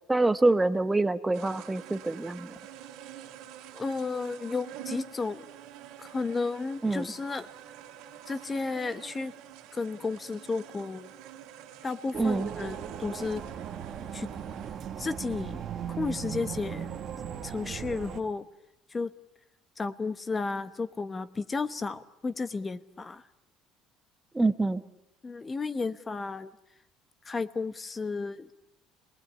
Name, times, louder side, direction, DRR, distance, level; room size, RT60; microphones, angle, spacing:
voice 1, 0.1-2.5 6.8-7.1 12.1-12.5 24.3-24.8, right 2 dB, 10° right, 10 dB, 1.0 m, -25 dB
sound 1, 1.3-14.7, right 11 dB, 70° right, 2.6 m, -47 dB
voice 2, 3.7-5.4 6.0-7.5 8.3-9.3 9.7-11.1 11.8-13.4 14.1-14.3 15.0-16.9 17.4-18.4 18.9-19.1 19.8-23.2 25.2-26.5 27.2-28.5, left 4 dB, 20° left, 13 dB, 1.1 m, -33 dB
sound 2, 12.1-18.2, right 8 dB, 40° right, 1.9 m, -37 dB
27.5 x 20.5 x 9.9 m, 0.83 s
cardioid pair, 155°, 0 cm